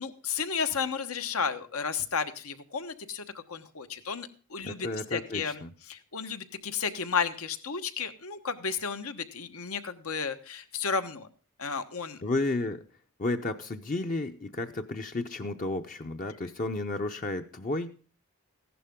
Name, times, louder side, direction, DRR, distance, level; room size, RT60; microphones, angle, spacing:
voice 1, 0.0-5.6 5.9-11.3 11.6-12.2, left 6 dB, 85° left, 8 dB, 1.3 m, -33 dB
voice 2, 4.6-5.7 12.2-12.8 13.2-17.9, left 2 dB, 35° left, 6 dB, 0.6 m, -32 dB
15.0 x 11.0 x 3.6 m, 0.38 s
head